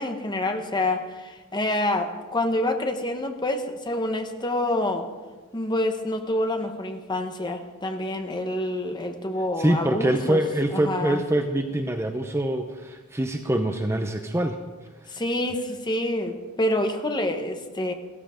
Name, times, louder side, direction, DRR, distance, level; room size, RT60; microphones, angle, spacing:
voice 1, 0.0-5.1 5.5-10.4 10.7-11.2 15.1-17.9, left 1 dB, 20° left, 6 dB, 1.1 m, -27 dB
voice 2, 9.6-14.6, right 1 dB, 10° right, 6 dB, 0.7 m, -24 dB
15.0 x 13.5 x 5.1 m, 1.3 s
head